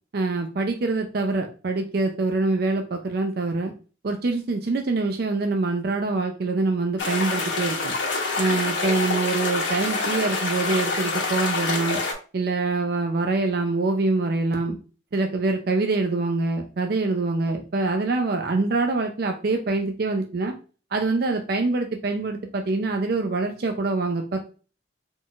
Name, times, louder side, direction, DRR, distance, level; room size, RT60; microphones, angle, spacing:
voice 1, 0.1-3.7 4.0-7.9 8.4-12.0 12.3-14.8 15.1-20.5 20.9-24.4, right 3 dB, 55° right, 4 dB, 0.5 m, -25 dB
sound 1, 7.0-12.1, left 3 dB, 85° left, 1.2 m, -26 dB
4.0 x 3.9 x 2.4 m, 0.35 s
head